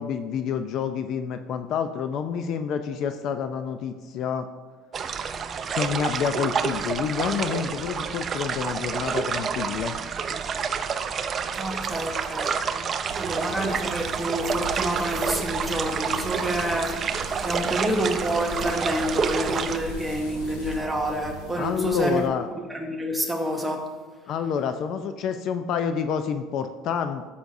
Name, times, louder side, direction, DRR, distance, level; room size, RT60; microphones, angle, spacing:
voice 1, 0.0-4.5 5.7-10.0 21.5-22.5 24.3-27.3, left 7 dB, 50° left, 0.5 m, -28 dB
sound 1, 4.9-19.8, right 6 dB, 30° right, 0.5 m, -29 dB
voice 2, 11.6-12.6 13.2-22.2 22.7-23.9, right 1 dB, 5° right, 1.2 m, -28 dB
sound 2, 13.1-22.3, right 3 dB, 65° right, 1.4 m, -41 dB
sound 3, 14.4-20.8, left 1 dB, 90° left, 1.6 m, -41 dB
13.5 x 6.9 x 2.6 m
cardioid pair, 130°, 0 cm